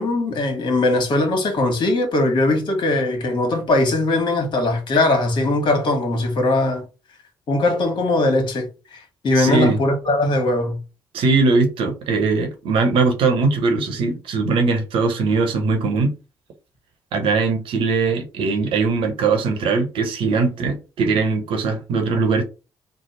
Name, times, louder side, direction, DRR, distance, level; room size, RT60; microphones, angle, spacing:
voice 1, 0.0-6.8 7.5-10.8, left 2 dB, 55° left, 1.3 m, -20 dB
voice 2, 9.3-9.8 11.1-16.1 17.1-22.4, right 4 dB, 65° right, 0.9 m, -20 dB
3.3 x 2.0 x 4.2 m
hypercardioid pair, 45°, 9 cm